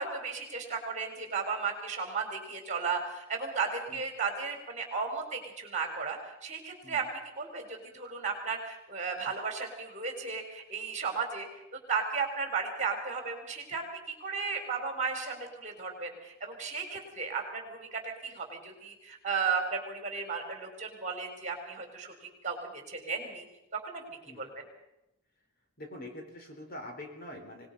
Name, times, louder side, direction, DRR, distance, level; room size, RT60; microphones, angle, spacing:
voice 1, 0.0-7.0 7.4-11.5 11.9-22.1 22.4-23.5 23.8-24.6, right 5 dB, 35° right, 4 dB, 4.2 m, -35 dB
voice 2, 25.8-27.7, left 1 dB, 45° left, 3 dB, 3.9 m, -44 dB
24.5 x 19.5 x 5.5 m, 0.89 s
head